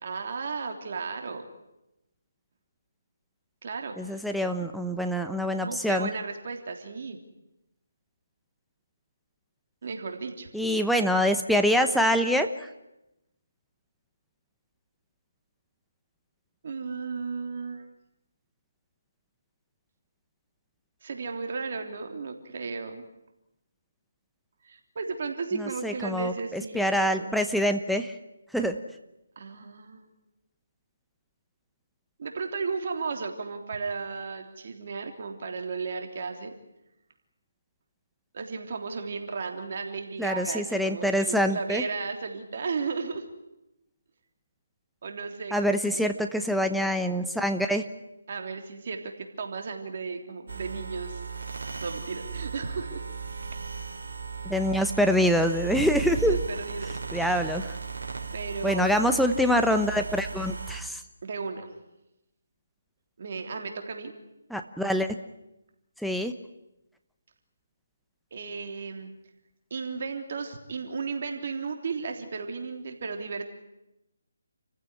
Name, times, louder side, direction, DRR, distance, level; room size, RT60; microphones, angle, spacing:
voice 1, 0.0-1.4 3.6-4.2 5.6-7.2 9.8-10.5 16.6-17.9 21.0-23.1 24.6-27.3 29.4-30.1 32.2-36.5 38.3-43.3 45.0-46.1 48.3-51.2 51.8-53.0 53.5-53.6 54.1-54.2 56.1-57.2 58.3-59.0 61.2-61.7 63.2-64.1 68.3-69.1 69.7-73.5, right 4 dB, 50° right, 4 dB, 3.3 m, -34 dB
voice 2, 4.0-6.1 10.5-12.7 25.5-28.1 28.5-28.8 40.2-41.8 45.5-47.8 54.4-56.4 57.1-57.7 58.6-61.0 64.5-65.1 66.0-66.3, equal, ahead, 6 dB, 1.0 m, -25 dB
sound 1, 50.5-60.8, right 5 dB, 65° right, 4.2 m, -36 dB
29.0 x 15.5 x 9.9 m, 0.91 s
figure-of-eight pair, 155°, 0 cm